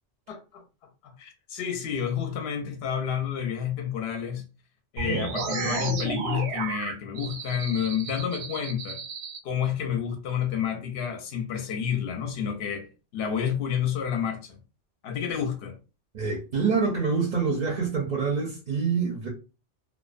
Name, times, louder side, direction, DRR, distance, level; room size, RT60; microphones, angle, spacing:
voice 1, 0.3-0.6 1.0-4.4 4.9-9.0 9.4-14.6 15.0-15.8, left 8 dB, 65° left, 0.8 m, -30 dB
voice 2, 5.0-5.4 16.1-19.3, right 5 dB, 50° right, 0.5 m, -26 dB
sound 1, 5.0-9.4, right 5 dB, 80° right, 0.9 m, -33 dB
2.4 x 2.1 x 2.4 m
omnidirectional pair, 1.2 m